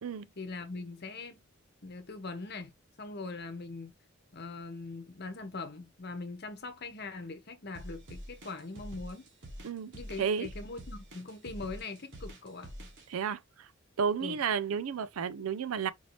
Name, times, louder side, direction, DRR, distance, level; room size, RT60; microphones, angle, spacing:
voice 1, 0.4-1.5 1.8-2.7 3.0-3.9 4.3-9.3 9.9-12.7 14.2-14.4, left 3 dB, 50° left, 1.0 m, -41 dB
sound 1, 7.7-13.1, equal, 60° right, 1.4 m, -45 dB
voice 2, 13.1-13.7 14.0-15.9, right 6 dB, 85° right, 0.4 m, -32 dB
4.5 x 2.8 x 3.0 m
head